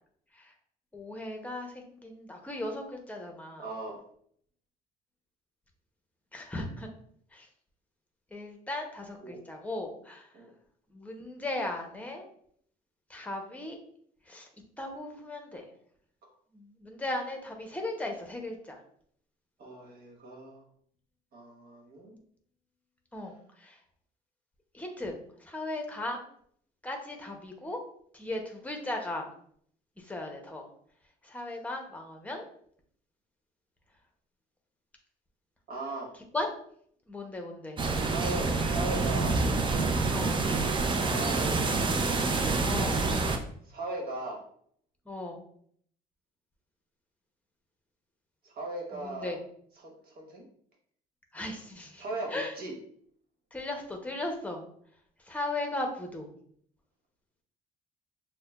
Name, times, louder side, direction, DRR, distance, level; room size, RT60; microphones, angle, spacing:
voice 1, 0.9-3.6 6.3-6.9 7.3-7.5 8.3-10.3 10.9-12.3 13.1-13.8 14.3-14.5 14.8-15.7 16.5-18.8 23.1-23.8 24.7-26.2 26.8-27.8 28.1-29.3 30.0-30.7 31.2-32.5 36.3-36.5 37.1-37.8 40.1-40.4 42.6-43.0 45.1-45.4 48.9-49.4 51.3-52.0 52.3-52.5 53.5-54.6 55.3-56.3, left 2 dB, 10° left, 2 dB, 0.8 m, -37 dB
voice 2, 3.6-4.0 9.2-9.4 10.3-10.5 16.2-16.3 19.6-20.6 21.3-22.2 35.7-36.1 37.9-39.4 41.0-41.9 43.6-44.4 48.4-49.3 49.8-50.5 52.0-52.7, right 2 dB, 65° right, 0 dB, 1.4 m, -38 dB
sound 1, 37.8-43.4, right 3 dB, 30° right, 0.5 m, -27 dB
6.3 x 2.2 x 2.4 m, 0.63 s
cardioid pair, 110°, 17 cm